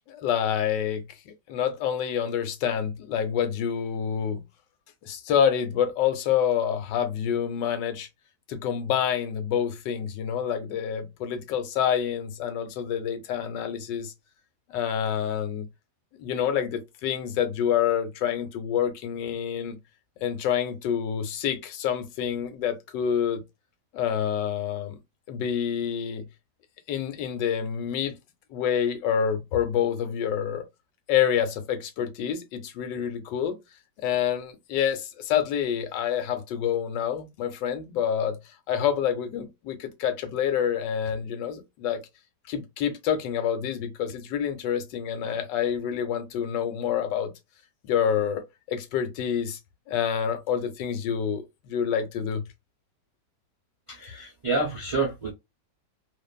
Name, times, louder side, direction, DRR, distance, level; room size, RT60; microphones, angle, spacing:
voice 1, 0.1-4.4 5.0-8.1 8.5-14.1 14.7-15.7 16.2-19.8 20.2-23.4 23.9-25.0 25.3-26.2 26.9-28.2 28.5-30.6 31.1-33.6 34.0-38.4 38.7-42.0 42.5-47.3 47.8-49.6 49.9-52.4, left 8 dB, 85° left, 1.3 m, -27 dB
voice 2, 53.9-55.3, right 3 dB, 45° right, 0.4 m, -28 dB
2.5 x 2.5 x 2.3 m
omnidirectional pair, 1.9 m